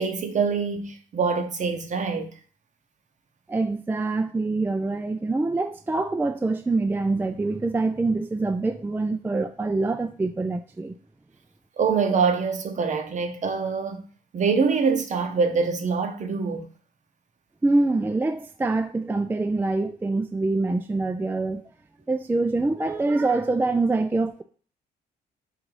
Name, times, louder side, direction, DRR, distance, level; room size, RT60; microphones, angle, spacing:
voice 1, 0.0-2.3 11.8-14.0 14.3-16.7, right 5 dB, 45° right, 0.8 m, -24 dB
voice 2, 3.5-10.9 17.6-21.6 22.1-24.4, right 3 dB, 10° right, 0.3 m, -25 dB
3.8 x 2.7 x 4.6 m
cardioid pair, 75°, 17 cm